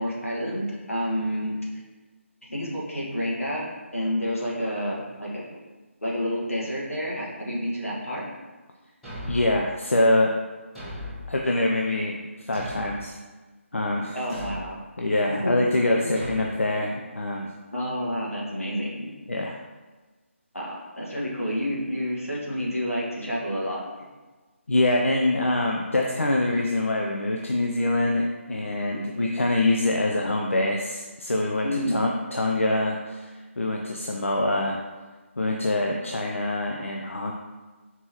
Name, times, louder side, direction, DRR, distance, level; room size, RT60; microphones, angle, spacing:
voice 1, 0.0-1.6 2.5-3.7 3.9-5.4 6.0-8.3 14.1-14.8 15.2-15.5 16.0-16.1 17.7-19.1 20.5-23.8 31.6-32.0, equal, 90° left, -5 dB, 1.5 m, -29 dB
Thump thud, 9.0-9.6 10.7-11.3 12.5-13.1 14.3-14.7 16.1-16.5, left 1 dB, ahead, 1.2 m, -37 dB
voice 2, 9.3-10.3 11.3-12.2 12.4-13.2 13.7-14.2 15.0-17.5 19.3-19.6 24.7-34.8 35.4-37.3, left 2 dB, 70° left, 0 dB, 0.5 m, -25 dB
4.3 x 3.5 x 2.9 m, 1.3 s
figure-of-eight pair, 155°, 7 cm